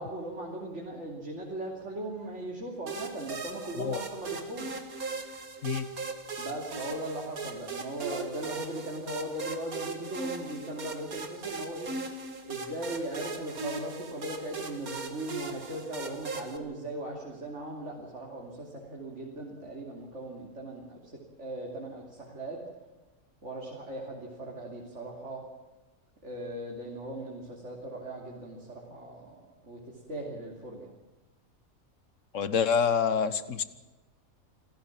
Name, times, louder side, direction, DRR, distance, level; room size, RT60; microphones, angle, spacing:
voice 1, 0.0-4.7 6.4-11.9 12.5-21.1 21.4-22.6 23.4-25.4 26.2-29.4 29.6-30.9, right 1 dB, 55° right, -2 dB, 3.4 m, -38 dB
sound 1, 2.9-16.6, right 3 dB, 85° right, 2.5 m, -39 dB
voice 2, 32.3-33.6, left 6 dB, 60° left, 13 dB, 1.5 m, -27 dB
27.0 x 15.5 x 7.6 m, 1.1 s
omnidirectional pair, 1.5 m